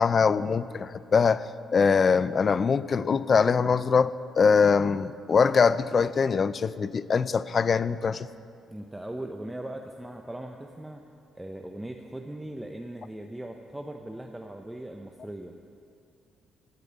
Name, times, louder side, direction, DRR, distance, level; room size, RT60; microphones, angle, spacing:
voice 1, 0.0-1.4 1.7-8.3, left 5 dB, 45° left, 16 dB, 0.3 m, -23 dB
voice 2, 8.7-15.5, right 1 dB, 10° right, 3 dB, 0.7 m, -39 dB
15.0 x 5.2 x 8.0 m, 2.4 s
cardioid pair, 90°, 0 cm